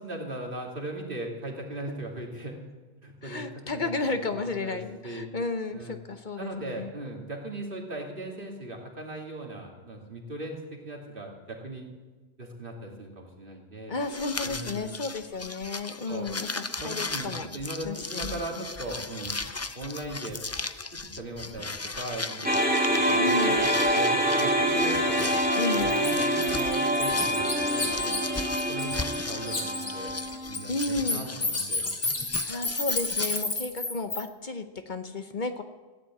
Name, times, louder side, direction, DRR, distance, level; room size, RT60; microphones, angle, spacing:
voice 1, 0.0-2.6 3.0-3.9 4.2-5.3 5.7-6.0 6.4-11.9 12.4-13.9 14.4-15.0 16.1-16.3 16.8-19.4 19.7-20.4 20.9-21.7 22.0-22.6 22.9-25.4 25.7-28.3 28.7-30.1 30.5-31.8, right 1 dB, 55° right, 0 dB, 2.8 m, -38 dB
voice 2, 3.2-6.9 13.9-17.5 17.8-18.6 23.2-23.6 25.5-25.9 30.7-31.2 32.4-35.6, left 3 dB, 50° left, 8 dB, 1.0 m, -33 dB
sound 1, 14.0-33.4, left 3 dB, 25° left, 0.4 m, -37 dB
sound 2, 22.4-30.7, equal, 10° right, 2.0 m, -26 dB
Bird, 25.2-25.3 25.7-29.2 29.5-34.2, left 3 dB, 80° left, 2.6 m, -30 dB
15.5 x 10.0 x 8.5 m, 1.3 s
omnidirectional pair, 1.1 m